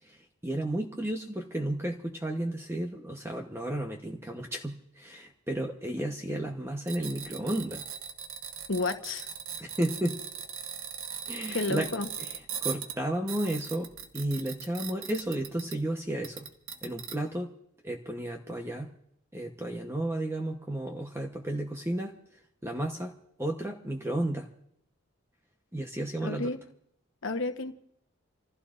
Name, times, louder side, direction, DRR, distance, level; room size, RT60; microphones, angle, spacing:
voice 1, 0.0-7.8 9.6-10.2 11.2-11.9 12.2-12.3 12.6-16.5 16.8-17.5 17.8-18.9 19.3-22.1 22.6-23.1 23.4-24.5 25.7-26.5, right 1 dB, 10° right, 2 dB, 1.0 m, -33 dB
sound 1, 6.9-15.9 16.2-17.1, right 8 dB, 75° right, 1.3 m, -39 dB
voice 2, 8.7-9.3 11.5-12.1 26.2-26.6 27.2-27.7, left 3 dB, 65° left, 7 dB, 1.2 m, -31 dB
29.5 x 15.5 x 2.6 m, 0.73 s
head